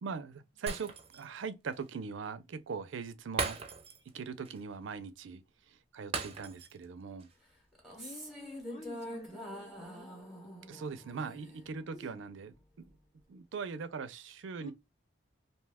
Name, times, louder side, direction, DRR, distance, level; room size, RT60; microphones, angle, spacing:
voice 1, 0.0-3.6 4.1-5.4 5.9-7.3 10.7-12.9 13.3-14.7, right 5 dB, 85° right, 0.4 m, -41 dB
Shatter, 0.7-1.4 1.7-1.8 3.4-4.1 4.4-4.6 6.1-6.8 7.2-7.3, right 4 dB, 30° right, 0.5 m, -38 dB
sound 1, 7.7-12.2, equal, ahead, 0.9 m, -46 dB
voice 2, 8.0-10.1 11.9-12.2 14.6-14.7, left 2 dB, 35° left, 0.6 m, -49 dB
2.7 x 2.2 x 3.3 m
head